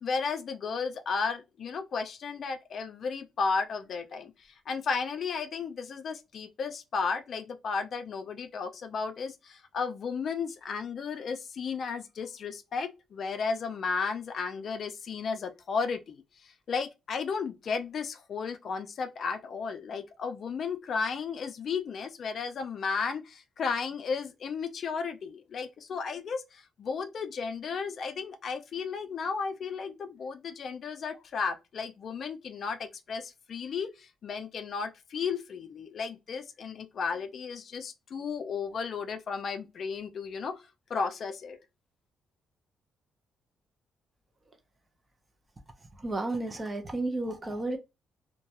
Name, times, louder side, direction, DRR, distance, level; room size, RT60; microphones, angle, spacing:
voice 1, 0.0-40.6 40.9-41.6, left 5 dB, 55° left, 0.4 m, -34 dB
voice 2, 46.0-47.8, right 2 dB, 25° right, 0.6 m, -32 dB
2.2 x 2.2 x 2.8 m
cardioid pair, 90°, 0 cm